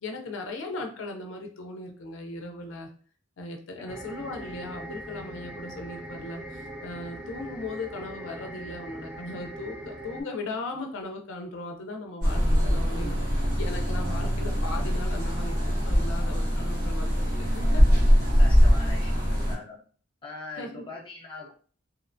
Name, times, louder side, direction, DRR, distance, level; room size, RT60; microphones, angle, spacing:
voice 1, 0.0-2.9 3.4-17.8 18.1-18.3 20.6-20.8, left 2 dB, 75° left, 3 dB, 0.4 m, -38 dB
sound 1, 3.9-10.2, right 1 dB, 10° right, 0.4 m, -41 dB
sound 2, 12.2-19.5, equal, 65° right, 1.1 m, -23 dB
voice 2, 18.4-19.7 20.2-21.5, left 3 dB, 25° left, -3 dB, 0.8 m, -41 dB
2.7 x 2.1 x 2.5 m, 0.43 s
head